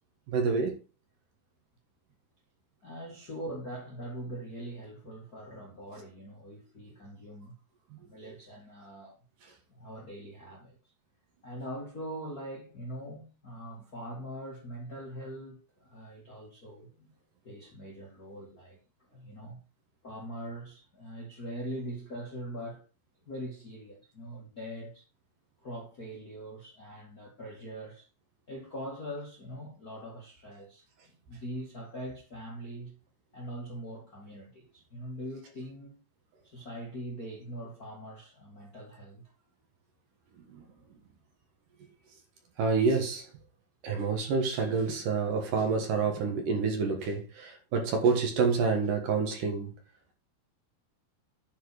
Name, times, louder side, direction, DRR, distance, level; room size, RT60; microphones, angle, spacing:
voice 1, 0.3-0.7 40.5-40.6 42.6-43.2 43.8-49.7, right 4 dB, 60° right, 2.8 m, -28 dB
voice 2, 2.8-7.5 8.0-9.2 9.7-10.8 11.4-17.1 17.4-18.8 19.1-19.6 20.0-22.8 23.3-25.0 25.6-28.0 28.5-30.8 31.3-32.9 33.3-36.0 36.4-39.2, equal, 35° left, 1.5 m, -42 dB
10.5 x 4.7 x 4.9 m
omnidirectional pair, 4.7 m